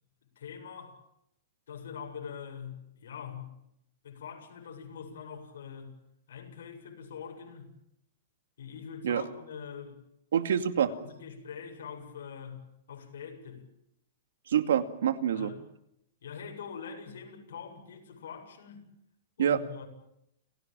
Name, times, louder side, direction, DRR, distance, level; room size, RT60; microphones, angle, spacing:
voice 1, 0.4-1.0 1.7-3.5 4.0-5.9 6.3-7.7 8.6-10.0 10.9-13.6 15.3-15.6 16.2-18.9 19.4-19.9, left 7 dB, 80° left, 7.6 m, -43 dB
voice 2, 10.3-10.9 14.5-15.5 19.4-19.6, right 9 dB, 90° right, 2.3 m, -26 dB
29.5 x 17.0 x 8.9 m
supercardioid pair, 180°, 0 cm